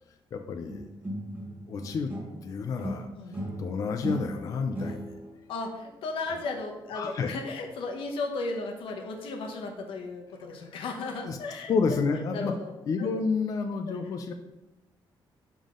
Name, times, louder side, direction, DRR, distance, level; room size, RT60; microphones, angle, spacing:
voice 1, 0.3-0.9 1.7-2.1 2.4-5.2 6.9-7.3 10.6-10.8 11.2-11.4 11.7-12.5 12.9-14.3, left 5 dB, 40° left, 6 dB, 0.3 m, -30 dB
sound 1, 0.7-2.5 2.8-5.4, right 1 dB, 20° right, 1.2 m, -37 dB
voice 2, 3.1-3.5 5.5-12.0 12.3-12.7 13.0-13.1 13.9-14.0, left 3 dB, 90° left, 2 dB, 1.0 m, -35 dB
7.1 x 3.6 x 3.7 m, 0.99 s
cardioid pair, 180°, 9 cm